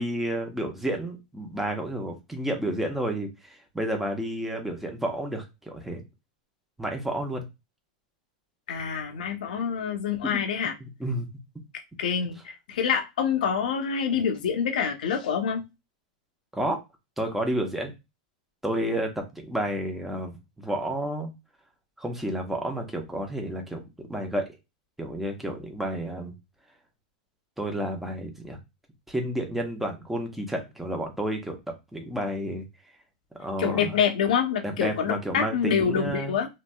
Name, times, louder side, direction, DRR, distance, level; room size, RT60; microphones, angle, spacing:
voice 1, 0.0-6.0 6.8-7.5 10.2-10.4 11.0-11.3 16.5-16.8 17.2-17.9 18.6-21.3 22.0-24.5 25.0-26.3 27.6-28.6 29.1-31.6 31.9-32.6 33.4-33.9 34.6-36.4, right 1 dB, 5° right, 0.9 m, -30 dB
voice 2, 8.7-10.7 12.0-15.6 33.6-36.5, left 7 dB, 75° left, 0.7 m, -26 dB
2.9 x 2.7 x 2.2 m
hypercardioid pair, 115°, 4 cm